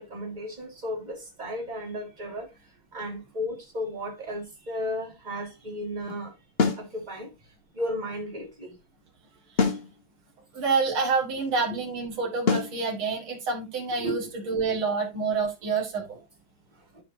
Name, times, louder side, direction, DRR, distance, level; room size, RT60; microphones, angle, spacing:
voice 1, 0.0-2.5 2.9-6.3 6.8-7.3 7.7-8.8 11.7-11.8 13.9-14.3 14.6-14.7, equal, 20° right, 2.3 m, -34 dB
sound 1, 6.6-6.9 9.6-9.9 12.5-12.8, left 5 dB, 35° left, 1.2 m, -23 dB
voice 2, 10.5-14.2 14.5-16.2, right 4 dB, 70° right, 3.1 m, -27 dB
12.5 x 5.0 x 2.8 m
omnidirectional pair, 2.3 m